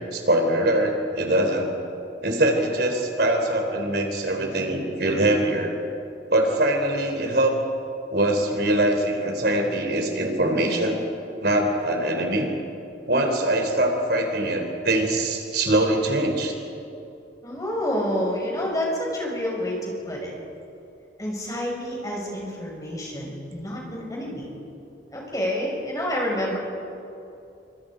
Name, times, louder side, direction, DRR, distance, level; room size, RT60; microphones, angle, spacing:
voice 1, 0.1-1.7 2.2-5.7 6.3-7.6 8.1-11.0 11.4-12.5 13.1-16.5, right 1 dB, 65° right, 3 dB, 3.6 m, -23 dB
voice 2, 17.4-20.3 21.2-24.5 25.1-26.6, equal, 20° left, -2 dB, 6.1 m, -28 dB
28.0 x 25.5 x 5.1 m, 2.7 s
head